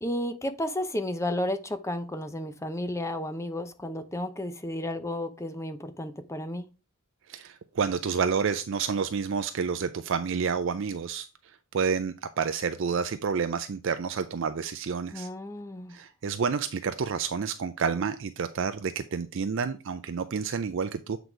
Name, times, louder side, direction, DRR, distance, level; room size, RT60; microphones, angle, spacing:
voice 1, 0.0-6.7 15.1-16.0, left 1 dB, 15° left, 0.7 m, -32 dB
voice 2, 7.3-11.3 11.7-15.3 15.9-21.2, right 6 dB, 60° right, 0.4 m, -29 dB
8.0 x 4.0 x 4.5 m
head